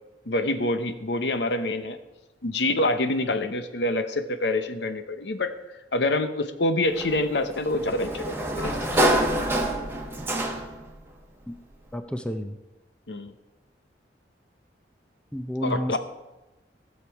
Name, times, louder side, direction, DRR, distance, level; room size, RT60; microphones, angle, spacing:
voice 1, 0.3-2.0 2.4-5.5 5.9-8.4 8.6-8.8 13.1-13.3 15.6-16.0, left 2 dB, 75° left, 9 dB, 0.9 m, -26 dB
Sliding door, 7.0-10.9, right 1 dB, 15° right, 1.2 m, -26 dB
voice 2, 11.9-12.6 15.3-16.0, equal, 5° left, 8 dB, 0.5 m, -30 dB
16.5 x 6.8 x 4.7 m, 1.0 s
head